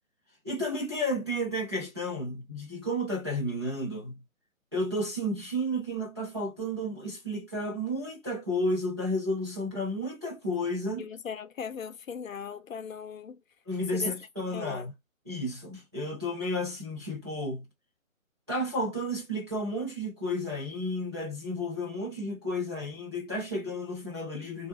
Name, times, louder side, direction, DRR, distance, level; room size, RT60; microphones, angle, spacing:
voice 1, 0.4-4.2 4.7-11.0 13.7-14.9 15.3-17.6 18.5-24.7, equal, 20° right, 0.7 m, -32 dB
voice 2, 11.0-13.4 13.9-14.1 14.5-14.9, left 7 dB, 75° left, 0.6 m, -38 dB
3.5 x 2.3 x 2.9 m
hypercardioid pair, 175°, 41 cm